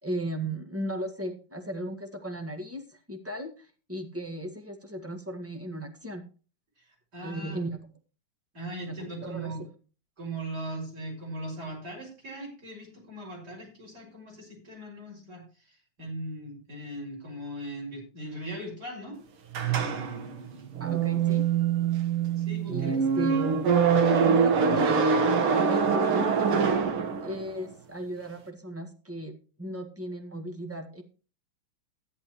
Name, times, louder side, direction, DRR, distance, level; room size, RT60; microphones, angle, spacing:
voice 1, 0.0-6.2 7.2-7.9 8.8-9.5 20.8-21.4 22.7-23.4 24.2-26.5 27.2-29.3 29.6-31.0, equal, 5° right, 4 dB, 1.4 m, -36 dB
voice 2, 6.8-7.6 8.5-9.6 10.2-19.2 22.4-23.0, right 1 dB, 50° right, -2 dB, 6.5 m, -39 dB
sound 1, 19.5-27.6, right 6 dB, 80° right, 2.3 m, -24 dB
14.0 x 10.5 x 3.1 m, 0.37 s
omnidirectional pair, 2.3 m